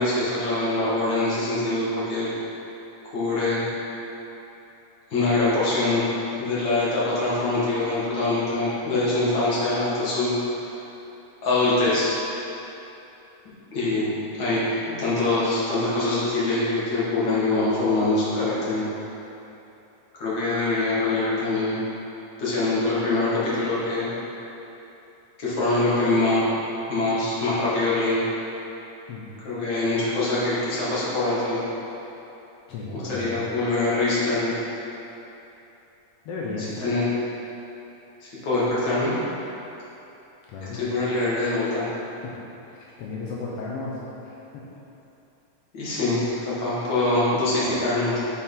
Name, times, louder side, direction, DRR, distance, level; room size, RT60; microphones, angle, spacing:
voice 1, 0.0-2.3 3.1-3.6 5.1-6.0 6.4-10.3 11.4-12.1 13.7-18.9 20.2-21.7 22.4-24.1 25.4-26.4 26.9-28.2 29.4-31.6 32.9-34.5 36.8-37.0 38.2-39.1 40.8-41.8 45.7-46.3 46.6-48.2, left 2 dB, 45° left, -9 dB, 1.8 m, -24 dB
voice 2, 32.7-33.5 36.2-36.8 40.5-40.9 42.2-42.3 42.8-44.4, left 3 dB, 85° left, -5 dB, 1.3 m, -34 dB
8.5 x 4.5 x 3.8 m, 3.0 s
omnidirectional pair, 3.7 m